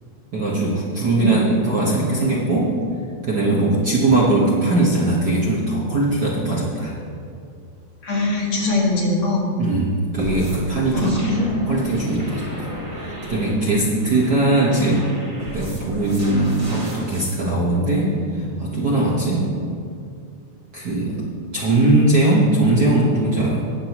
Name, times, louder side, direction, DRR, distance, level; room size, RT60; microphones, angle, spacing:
voice 1, 0.3-2.7 3.2-6.9 9.6-11.2 11.6-12.5 12.9-15.1 15.5-19.5 20.7-21.2 21.5-23.7, right 2 dB, 50° right, -5 dB, 1.3 m, -20 dB
voice 2, 8.0-9.5 10.9-11.7, left 2 dB, 65° left, -3 dB, 2.9 m, -21 dB
sound 1, 10.2-17.4, equal, 15° right, 1.1 m, -34 dB
20.5 x 7.6 x 3.0 m, 2.4 s
omnidirectional pair, 3.3 m